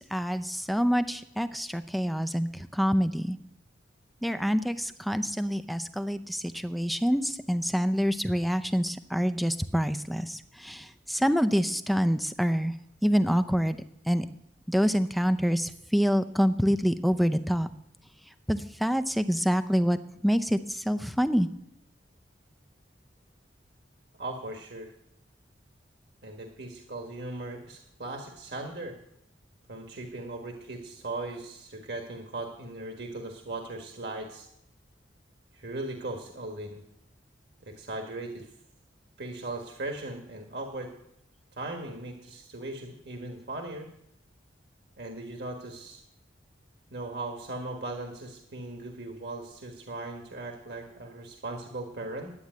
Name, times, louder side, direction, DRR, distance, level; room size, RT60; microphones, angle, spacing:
voice 1, 0.0-3.4 4.2-12.7 13.0-13.8 14.1-14.3 14.7-17.7 18.5-20.0 20.2-21.5, equal, ahead, 10 dB, 0.5 m, -26 dB
voice 2, 24.2-24.9 26.2-28.9 29.7-34.5 35.5-36.8 37.6-38.5 39.2-40.9 41.6-43.9 45.0-46.0 46.9-52.3, right 2 dB, 60° right, 3 dB, 1.5 m, -38 dB
11.5 x 8.7 x 9.3 m, 0.78 s
head